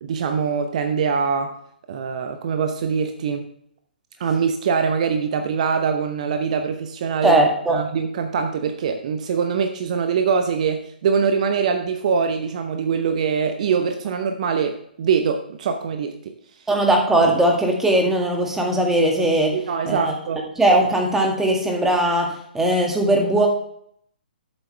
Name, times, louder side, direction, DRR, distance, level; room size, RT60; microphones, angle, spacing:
voice 1, 0.0-1.6 1.9-3.5 4.2-7.4 7.7-16.3 19.5-20.5, right 6 dB, 45° right, 7 dB, 0.9 m, -23 dB
voice 2, 7.2-7.8 16.7-19.6 19.9-20.1 20.6-23.5, right 1 dB, 5° right, 1 dB, 1.8 m, -19 dB
12.5 x 7.4 x 3.3 m, 0.68 s
figure-of-eight pair, 130°, 5 cm